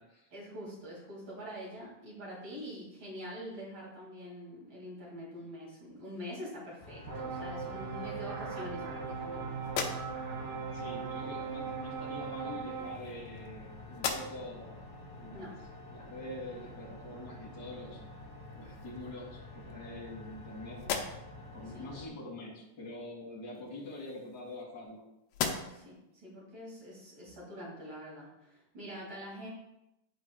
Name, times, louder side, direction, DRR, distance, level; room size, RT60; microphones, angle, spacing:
voice 1, 0.3-9.5 15.3-15.6 21.7-21.9 25.5-29.5, equal, 35° right, -5 dB, 2.7 m, -45 dB
sound 1, 6.8-22.1, left 2 dB, 55° left, 3.1 m, -49 dB
sound 2, 7.1-12.9, right 5 dB, 70° right, 3.3 m, -39 dB
sound 3, 9.6-10.5 11.6-11.8 12.7-13.6 13.9-14.6 15.1-15.2 17.9-18.0 18.4-19.1 19.7-20.4 20.8-21.5 23.5-24.9 25.3-26.0, left 6 dB, 90° left, 2.5 m, -39 dB
voice 2, 10.7-14.8 15.2-15.5 15.9-18.0 18.5-20.8 21.5-25.0, left 1 dB, 35° left, -5 dB, 2.2 m, -45 dB
10.5 x 4.7 x 2.3 m, 0.88 s
omnidirectional pair, 4.2 m